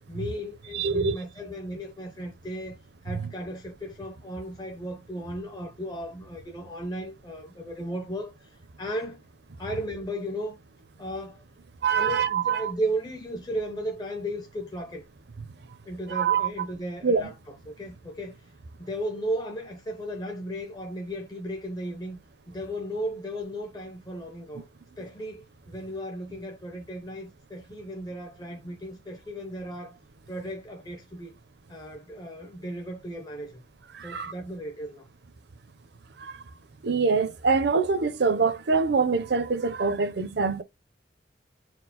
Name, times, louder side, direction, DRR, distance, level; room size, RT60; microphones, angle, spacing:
voice 1, 0.1-2.8 3.0-8.5 8.8-9.2 9.6-10.6 11.0-11.4 11.9-15.0 15.9-17.3 17.7-18.3 18.8-22.2 22.5-24.7 25.0-30.0 30.3-31.3 31.7-33.6 34.0-35.1, equal, 20° left, 0.7 m, -35 dB
voice 2, 0.7-1.2 3.1-3.3 11.8-12.7 16.1-16.5 17.0-17.3 33.9-34.3 36.2-36.5 36.8-40.6, right 5 dB, 60° right, 0.6 m, -25 dB
4.4 x 2.1 x 4.1 m
head